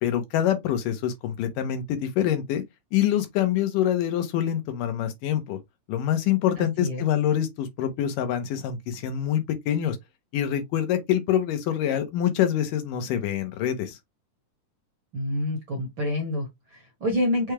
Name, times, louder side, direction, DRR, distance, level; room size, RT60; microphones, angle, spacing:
voice 1, 0.0-2.6 2.9-5.6 5.9-10.0 10.3-14.0, left 10 dB, 90° left, 2.5 m, -25 dB
voice 2, 6.6-7.0 15.1-17.5, left 1 dB, 60° right, 1.2 m, -28 dB
6.1 x 2.3 x 3.2 m
omnidirectional pair, 3.8 m